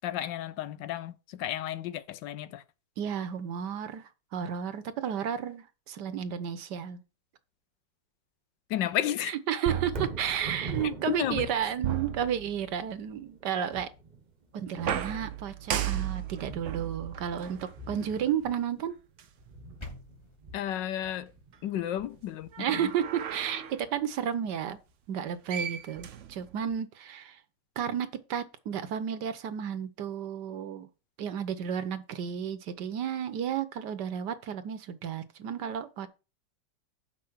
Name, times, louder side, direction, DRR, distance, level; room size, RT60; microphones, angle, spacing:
voice 1, 0.0-2.6 8.7-9.3 11.1-11.5 20.5-21.3 21.6-22.9, left 11 dB, 85° left, 1.4 m, -32 dB
voice 2, 3.0-4.0 4.3-7.0 9.3-13.9 14.5-17.6 17.9-18.9 22.6-24.8 25.1-27.4 27.8-30.9 31.2-36.1, right 8 dB, 75° right, 1.5 m, -32 dB
sound 1, 9.7-10.8 11.8-13.0 14.8-18.4 19.2-19.3 22.5-23.8 25.2-25.3 25.5-26.8, right 10 dB, 55° right, 0.8 m, -35 dB
Thunder, 9.8-24.0 24.5-24.6, right 3 dB, 30° right, 1.0 m, -44 dB
sound 2, 19.4-20.4, left 1 dB, 15° left, 1.3 m, -46 dB
6.9 x 5.8 x 6.2 m
omnidirectional pair, 1.9 m